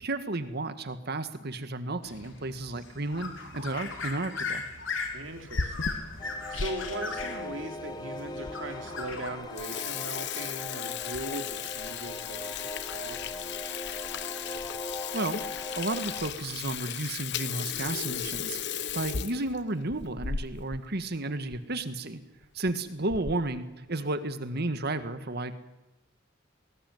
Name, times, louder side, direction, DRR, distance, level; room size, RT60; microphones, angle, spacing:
voice 1, 0.0-4.6 15.1-15.4 15.7-22.2 22.5-25.5, right 2 dB, 55° right, 10 dB, 1.8 m, -33 dB
sound 1, 2.0-9.3, left 4 dB, 80° left, 4.0 m, -38 dB
voice 2, 5.1-6.1 6.5-13.6, right 1 dB, 80° right, 5 dB, 3.2 m, -39 dB
Water tap faucet / Sink (filling or washing), 5.3-6.7 7.2-7.3 8.0-8.1 8.5-8.6 8.9-9.1 9.4-20.8 21.1-21.2 21.5-21.6 22.4-22.7 23.1-23.5, left 7 dB, 60° left, 1.1 m, -36 dB
sound 2, 6.2-16.3, left 2 dB, 20° left, 1.4 m, -40 dB
21.0 x 19.0 x 9.5 m, 0.97 s
head